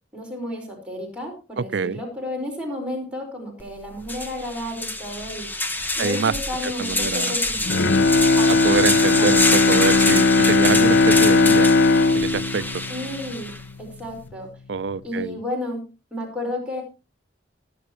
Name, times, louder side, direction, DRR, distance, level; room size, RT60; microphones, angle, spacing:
voice 1, 0.1-5.5 6.0-8.0 8.4-8.8 9.2-9.3 12.9-13.5 13.8-14.5 15.0-16.8, left 1 dB, 5° right, 5.1 m, -32 dB
voice 2, 1.6-2.0 6.0-6.3 6.6-7.4 8.5-11.7 12.1-12.6 14.7-15.4, right 5 dB, 70° right, 0.5 m, -25 dB
sound 1, 3.6-3.7 4.0-13.6, left 2 dB, 10° left, 1.0 m, -26 dB
Bowed string instrument, 7.6-13.9 14.3-14.4, left 3 dB, 70° left, 0.6 m, -18 dB
22.0 x 7.6 x 3.1 m
head